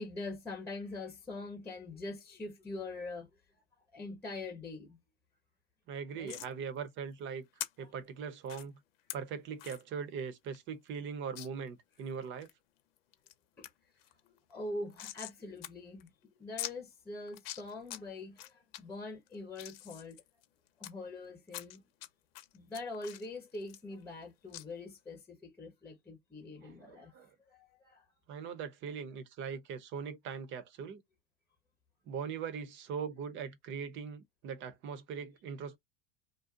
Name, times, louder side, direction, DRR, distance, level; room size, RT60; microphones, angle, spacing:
voice 1, 0.0-3.3 3.9-5.0 6.1-6.5 7.8-7.9 13.6-13.7 14.5-16.1 16.4-20.2 20.8-21.8 22.5-27.2 27.5-28.0, left 2 dB, 5° left, 1.0 m, -43 dB
voice 2, 5.9-7.5 7.8-8.8 9.1-12.5 26.6-27.3 28.3-31.0 32.1-35.8, right 6 dB, 35° right, 0.7 m, -41 dB
sound 1, 6.3-6.5 7.6-7.7 8.5-8.6 9.1-9.2 9.6-9.8 10.2-10.3 10.5-10.6 11.4-11.5 12.0-12.5 13.0-13.3 13.6-13.7 14.0-15.4 15.6-15.7 16.0-16.1 16.6-16.7 17.3-18.0 18.4-18.8 19.3-20.9 21.5-22.1 22.3-24.2 24.5-24.6, left 14 dB, 65° left, 0.8 m, -43 dB
2.6 x 2.1 x 3.7 m
supercardioid pair, 125°, 32 cm